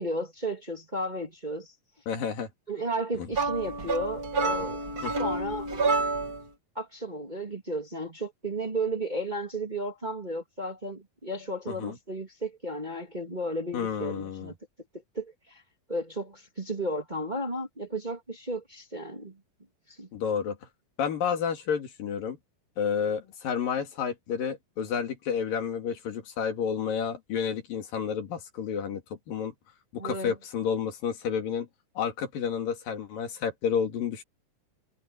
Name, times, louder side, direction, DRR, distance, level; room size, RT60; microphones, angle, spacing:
voice 1, 0.0-1.7 2.7-4.8 5.2-5.7 6.7-14.6 15.1-15.6 15.9-19.4 19.9-20.1 30.0-30.3, right 1 dB, 15° right, 2.4 m, -33 dB
voice 2, 2.1-2.5 3.2-3.3 5.0-5.1 11.7-12.0 13.7-14.5 20.1-20.6 21.0-22.4 22.8-29.0 29.3-29.5 29.9-31.7 32.0-34.2, left 7 dB, 85° left, 4.4 m, -30 dB
sound 1, 3.3-6.5, right 3 dB, 35° right, 1.8 m, -28 dB
omnidirectional pair, 3.9 m